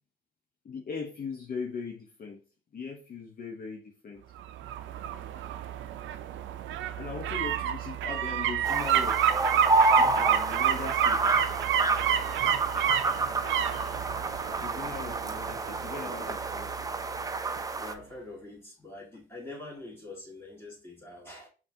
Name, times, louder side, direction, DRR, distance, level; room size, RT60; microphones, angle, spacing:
voice 1, 0.6-2.4 2.7-4.2 7.0-9.2 10.0-11.4 14.6-16.7, left 5 dB, 45° left, 0.8 m, -39 dB
sound 1, 4.4-17.2 17.6-17.7, right 10 dB, 75° right, 0.4 m, -30 dB
sound 2, 8.6-17.9, right 3 dB, 20° right, 0.4 m, -29 dB
voice 2, 17.8-21.5, left 2 dB, 10° left, 1.9 m, -44 dB
5.4 x 2.4 x 2.7 m
cardioid pair, 90°, 20 cm